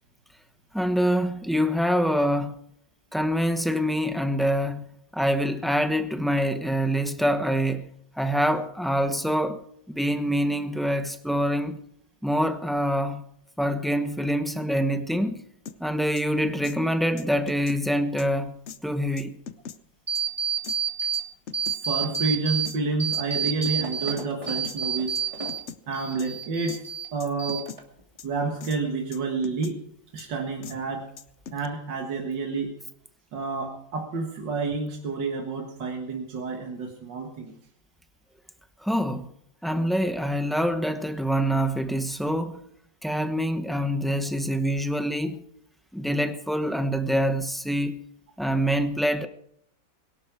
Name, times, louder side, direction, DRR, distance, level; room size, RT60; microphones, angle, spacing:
voice 1, 0.7-2.6 3.1-4.8 5.1-7.9 8.2-9.6 9.9-11.8 12.2-13.2 13.6-15.4 15.8-18.5 18.8-19.3 38.8-39.3 39.6-42.6 43.0-45.4 45.9-48.0 48.4-49.3, equal, ahead, 0.6 m, -25 dB
sound 1, 15.7-15.8 16.2-16.3 16.6-16.8 17.2-17.8 18.2-18.3 18.7-18.8 19.2-19.8 20.1-20.2 20.6-20.8 21.1-21.8 22.1-22.2 22.6-22.8 23.1-23.8 24.2-24.3 24.6-24.8 25.2-25.3 25.5-25.8 26.2-26.3 26.7-26.8 27.2-27.8 28.2-28.3 28.6-28.8 29.1-29.8 30.2-30.3 30.6-30.8 31.2-31.7, left 7 dB, 50° left, 0.9 m, -41 dB
sound 2, 20.1-21.2 21.5-22.7 23.0-25.6 25.9-27.1 27.4-28.0, right 7 dB, 15° right, 2.5 m, -29 dB
voice 2, 21.8-25.2 25.9-27.7 28.2-29.8 30.1-31.1 31.5-32.7 33.3-37.5, right 4 dB, 70° right, 2.4 m, -29 dB
22.0 x 12.0 x 4.9 m
omnidirectional pair, 2.0 m